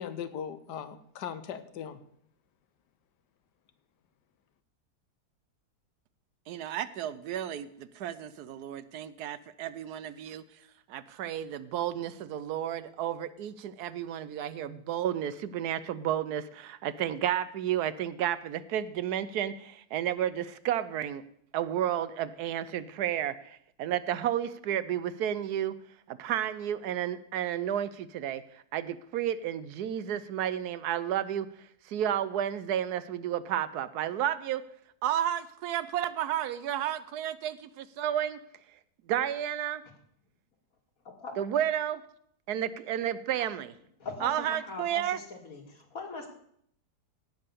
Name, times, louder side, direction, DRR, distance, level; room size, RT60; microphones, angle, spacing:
voice 1, 0.0-2.0, left 8 dB, 85° left, 11 dB, 1.5 m, -39 dB
voice 2, 6.5-10.4 10.9-21.2 21.5-25.7 26.1-31.5 31.8-34.6 35.0-38.4 39.1-39.8 41.4-42.0 42.5-43.7 44.2-45.2, right 10 dB, 75° right, 15 dB, 1.1 m, -32 dB
voice 3, 44.0-45.6 45.9-46.3, left 3 dB, 60° left, 3 dB, 2.3 m, -40 dB
16.5 x 5.6 x 6.7 m, 0.69 s
omnidirectional pair, 1.7 m